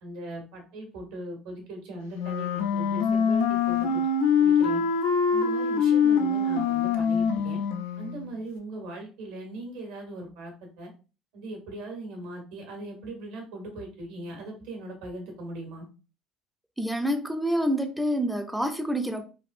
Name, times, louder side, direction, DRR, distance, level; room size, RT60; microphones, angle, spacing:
voice 1, 0.0-4.1 4.4-4.8 5.3-7.6 8.0-10.9 11.3-15.9, right 1 dB, 75° right, 1.2 m, -39 dB
Wind instrument woodwind instrument, 2.1-8.3, left 5 dB, 80° left, 0.4 m, -24 dB
voice 2, 16.8-19.2, equal, 5° right, 0.5 m, -27 dB
3.3 x 2.5 x 2.5 m
hypercardioid pair, 65°, 0 cm